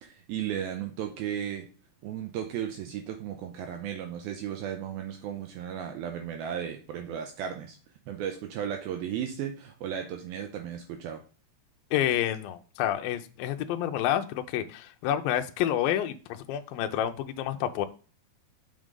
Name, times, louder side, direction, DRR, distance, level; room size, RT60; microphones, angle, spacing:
voice 1, 0.0-1.7 2.0-7.8 8.1-11.2, right 9 dB, 85° right, 5 dB, 2.2 m, -35 dB
voice 2, 11.9-17.9, left 11 dB, 90° left, 7 dB, 2.0 m, -29 dB
6.4 x 5.4 x 3.7 m, 0.38 s
omnidirectional pair, 4.8 m